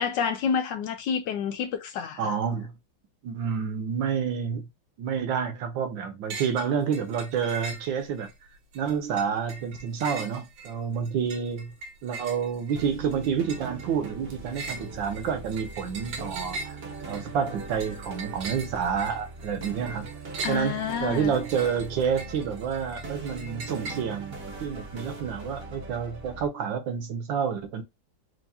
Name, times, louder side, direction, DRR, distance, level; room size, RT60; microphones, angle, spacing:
voice 1, 0.0-2.3 20.4-21.4, left 7 dB, 75° left, 1.1 m, -29 dB
voice 2, 2.2-2.7 3.2-4.7 5.0-8.3 8.7-11.7 12.0-16.8 17.1-20.1 20.5-27.8, right 7 dB, 75° right, 1.4 m, -29 dB
sound 1, 6.3-6.7 6.9-8.3 8.7-24.0, right 3 dB, 90° right, 1.9 m, -41 dB
sound 2, 12.8-26.5, right 3 dB, 45° right, 0.8 m, -41 dB
4.6 x 2.6 x 2.7 m
omnidirectional pair, 2.2 m